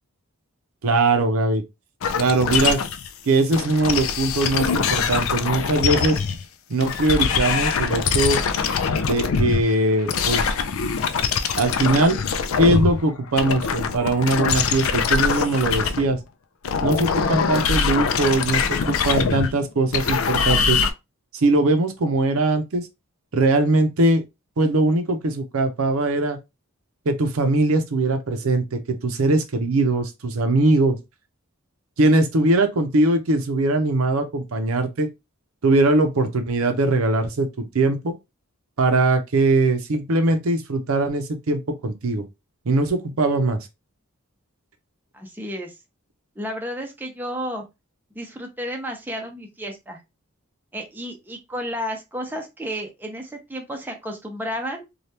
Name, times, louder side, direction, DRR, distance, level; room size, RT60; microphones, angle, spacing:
voice 1, 0.8-1.6 2.2-2.8 3.3-6.2 6.7-8.4 9.0-10.5 11.6-12.2 12.6-16.2 16.8-20.8 21.3-22.9 23.3-24.2 24.6-26.4 27.1-31.0 32.0-35.1 35.6-38.1 38.8-42.2 42.7-43.6, right 2 dB, 80° right, 0.6 m, -21 dB
sound 1, 2.0-3.1 3.5-6.4 6.8-13.0 13.3-16.2 16.6-20.9, left 6 dB, 70° left, 0.4 m, -23 dB
voice 2, 45.1-45.7 46.4-47.6 48.1-50.0 50.7-54.9, equal, 10° right, 0.6 m, -32 dB
3.3 x 2.3 x 2.8 m
head